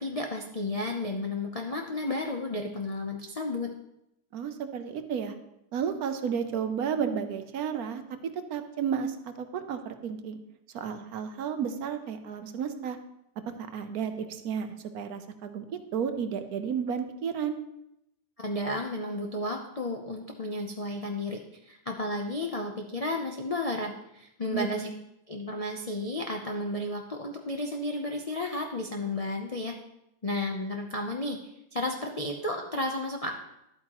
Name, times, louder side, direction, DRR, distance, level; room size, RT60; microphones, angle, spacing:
voice 1, 0.0-3.7 18.4-21.4 21.7-24.9 25.3-29.7 30.2-31.4 31.7-33.3, left 2 dB, 55° left, 1 dB, 0.4 m, -32 dB
voice 2, 4.3-5.3 5.7-10.4 10.7-13.0 13.5-17.6 24.5-24.9, right 7 dB, 65° right, 8 dB, 1.1 m, -32 dB
11.5 x 8.4 x 3.0 m, 0.84 s
omnidirectional pair, 1.7 m